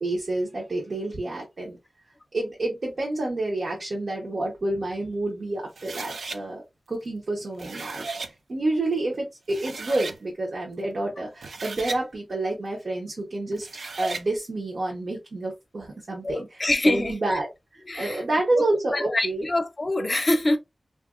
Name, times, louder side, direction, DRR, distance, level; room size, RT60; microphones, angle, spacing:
voice 1, 0.0-1.8 2.3-6.6 6.9-8.0 8.5-13.7 14.0-19.5, right 2 dB, 65° right, 0.8 m, -29 dB
sound 1, 5.7-6.4 7.4-8.3 9.1-9.2 9.5-10.2 11.2-12.0 13.5-14.3, right 4 dB, 85° right, 0.3 m, -35 dB
voice 2, 16.2-17.2 17.9-18.2 18.9-20.6, left 1 dB, 40° left, 0.6 m, -24 dB
2.8 x 2.5 x 2.4 m
wide cardioid pair, 70°, 0 cm